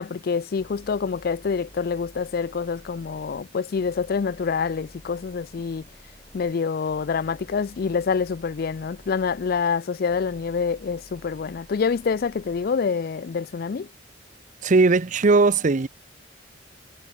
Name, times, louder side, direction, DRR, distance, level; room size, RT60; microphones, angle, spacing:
voice 1, 0.0-5.8 6.3-13.9, left 5 dB, 50° left, 0.4 m, -26 dB
sound 1, 0.6-3.4 3.7-6.5 6.9-9.6 10.1-12.7, equal, 30° left, 6.0 m, -50 dB
voice 2, 14.6-15.9, right 3 dB, 40° right, 0.6 m, -18 dB
head